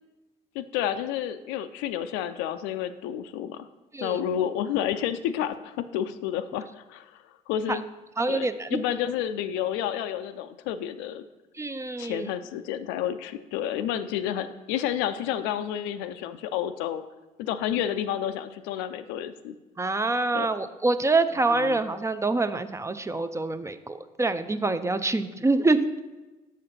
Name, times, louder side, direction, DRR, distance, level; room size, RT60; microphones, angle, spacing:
voice 1, 0.5-3.7 4.0-7.8 8.3-11.2 12.0-17.0 17.4-19.5 20.3-20.5 21.5-21.8, left 10 dB, 75° left, 11 dB, 0.4 m, -30 dB
voice 2, 8.2-8.8 11.6-12.3 19.8-25.9, right 3 dB, 15° right, 11 dB, 0.4 m, -26 dB
6.5 x 5.0 x 4.2 m, 1.1 s
hypercardioid pair, 55°, 19 cm